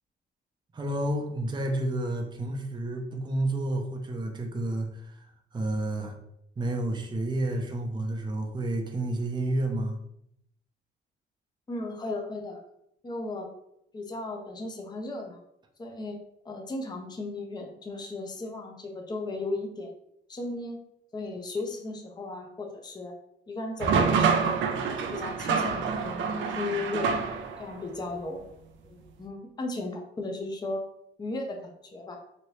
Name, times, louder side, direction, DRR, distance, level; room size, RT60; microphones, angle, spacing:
voice 1, 0.7-6.2 6.6-10.0, right 1 dB, 20° right, 2 dB, 0.6 m, -30 dB
voice 2, 11.7-12.6 13.0-13.5 13.9-15.4 15.8-16.2 16.4-19.9 20.3-20.8 21.1-23.1 23.5-24.6 25.0-27.1 27.6-28.4 28.8-30.8 31.2-32.2, left 2 dB, 20° left, 2 dB, 0.6 m, -35 dB
sound 1, 23.8-27.7, right 5 dB, 70° right, 0.5 m, -27 dB
3.1 x 2.6 x 3.0 m, 0.75 s
cardioid pair, 90°, 20 cm